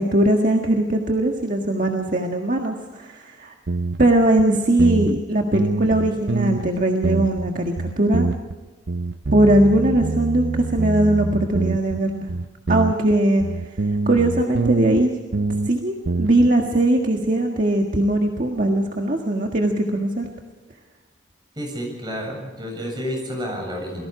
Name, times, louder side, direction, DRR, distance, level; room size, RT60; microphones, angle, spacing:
voice 1, 0.0-3.5 4.0-8.3 9.3-12.3 12.7-13.4 14.1-15.1 15.7-20.3, right 1 dB, 45° right, 2 dB, 1.7 m, -20 dB
sound 1, 3.7-4.1 4.4-4.5 4.8-5.2 5.5-6.7 7.0-7.5 7.8-8.6 8.9-12.0 12.3-15.0 15.3-15.7 16.0-16.5, right 3 dB, 65° right, 0.7 m, -25 dB
voice 2, 21.6-24.1, equal, 25° right, 2 dB, 7.7 m, -30 dB
28.5 x 19.5 x 4.9 m, 1.3 s
head